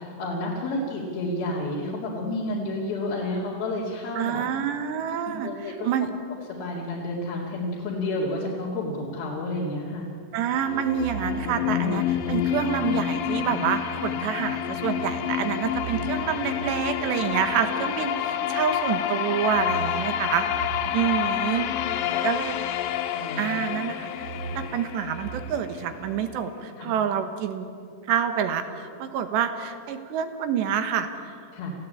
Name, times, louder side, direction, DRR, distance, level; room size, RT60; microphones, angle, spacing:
voice 1, 0.0-4.5 5.3-5.9 6.5-10.1 20.9-22.3 23.1-23.6 26.8-26.9 31.5-31.7, left 1 dB, 65° left, -5 dB, 4.2 m, -31 dB
voice 2, 4.2-6.1 10.3-20.5 20.9-22.0 22.2-22.6 23.4-24.1 24.6-27.7 28.1-31.4, right 8 dB, 80° right, 8 dB, 3.6 m, -27 dB
sound 1, 10.5-26.4, left 10 dB, 85° left, 3.1 m, -29 dB
sound 2, 10.7-13.6 14.7-18.6 19.3-23.4 23.7-25.6, right 7 dB, 55° right, 1.8 m, -40 dB
28.0 x 16.5 x 8.5 m, 2.4 s
omnidirectional pair, 4.9 m